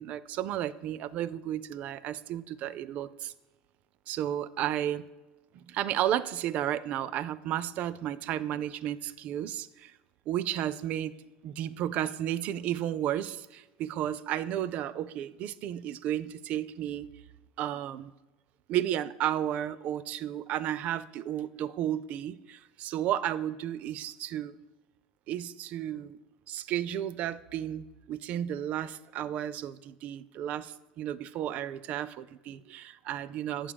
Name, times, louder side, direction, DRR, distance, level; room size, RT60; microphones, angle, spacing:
voice 1, 0.0-3.3 4.1-5.0 5.5-9.9 10.3-11.1 11.4-17.1 17.6-18.1 18.7-24.6 25.3-26.2 26.5-33.7, right 11 dB, 50° right, 17 dB, 0.3 m, -33 dB
8.7 x 3.7 x 6.8 m, 1.2 s
supercardioid pair, 125°, 3 cm